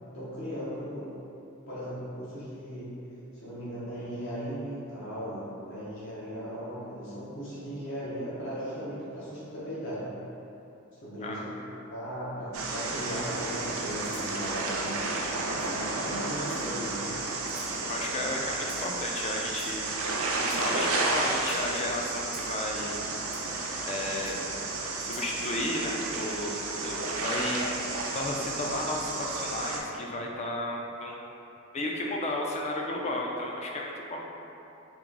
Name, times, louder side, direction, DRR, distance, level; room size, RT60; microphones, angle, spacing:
voice 1, 0.1-1.1 1.7-2.9 3.3-10.1 10.9-11.6 11.9-15.0 15.5-17.2, equal, 60° left, -10 dB, 0.9 m, -37 dB
voice 2, 11.2-11.5 17.9-19.9 20.4-23.0 23.9-24.4 25.0-31.2 31.7-34.3, left 1 dB, 30° left, -1 dB, 0.4 m, -33 dB
sound 1, 12.5-29.8, right 3 dB, 85° right, 0.5 m, -32 dB
Rattle (instrument), 14.0-14.3 15.6-15.7 16.4-16.9 17.4-17.7 18.6-19.0 19.5-20.0 20.4-20.7 21.4-21.6 22.3-22.5 23.3-23.4 24.2-24.3 25.0-25.3, right 3 dB, 20° right, 0.5 m, -49 dB
3.0 x 2.9 x 3.7 m, 2.8 s
head